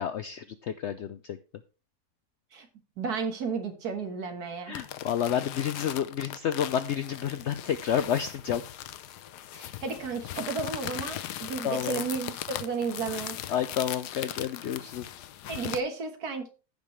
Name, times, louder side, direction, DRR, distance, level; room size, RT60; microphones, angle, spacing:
voice 1, 0.0-1.4 4.7-8.6 11.6-12.0 13.5-15.1, left 9 dB, 75° left, 12 dB, 0.6 m, -30 dB
voice 2, 3.0-4.8 9.5-13.4 15.5-16.5, right 5 dB, 75° right, 7 dB, 1.9 m, -33 dB
sound 1, 4.7-15.8, left 12 dB, 90° left, 1.2 m, -39 dB
15.5 x 5.2 x 3.1 m, 0.34 s
omnidirectional pair, 1.7 m